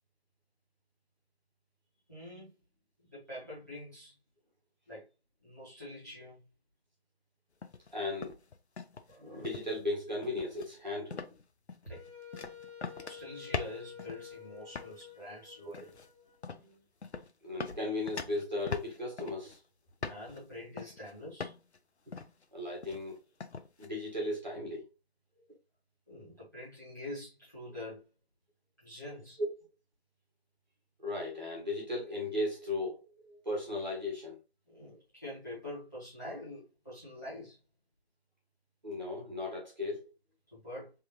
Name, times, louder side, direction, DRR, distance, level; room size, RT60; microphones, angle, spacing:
voice 1, 2.1-2.5 3.0-4.2 4.9-5.1 5.4-6.5 11.8-12.0 13.0-15.9 20.0-21.5 26.1-28.0 28.8-29.4 34.7-37.6 40.5-40.9, left 1 dB, 15° left, 1.5 m, -45 dB
sound 1, 7.6-7.9 8.2-9.2 9.4-9.8 10.2-10.7 11.1-11.4 11.7-14.4 14.7-15.0 15.7-16.1 16.4-16.7 17.0-17.3 17.6-19.6 20.0-20.4 20.8-21.1 21.4-21.8 22.1-22.4 22.8-23.1 23.4-23.9, left 5 dB, 90° left, 0.7 m, -41 dB
voice 2, 7.9-8.3 9.1-11.2 15.7-15.8 17.4-19.6 22.5-23.2 23.8-24.8 29.4-29.5 31.0-33.0 33.3-34.3 38.8-40.1, left 2 dB, 45° right, 1.6 m, -36 dB
Wind instrument woodwind instrument, 11.9-16.8, left 8 dB, 15° right, 1.8 m, -51 dB
3.5 x 3.4 x 2.8 m
figure-of-eight pair, 180°, 32 cm